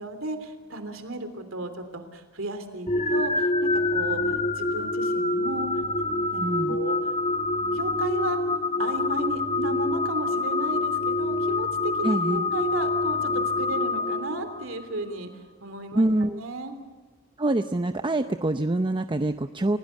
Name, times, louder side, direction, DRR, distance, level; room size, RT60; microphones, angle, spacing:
voice 1, 0.0-5.8 6.3-6.4 6.7-6.9 7.7-8.4 8.8-16.1 16.4-16.7, right 2 dB, 70° right, 8 dB, 3.3 m, -34 dB
sound 1, 2.9-14.8, left 2 dB, 30° left, 1.4 m, -26 dB
voice 2, 6.3-6.8 12.0-12.5 15.9-16.4 17.4-19.8, right 1 dB, 25° right, 8 dB, 0.7 m, -25 dB
29.5 x 17.0 x 8.3 m, 1.3 s
head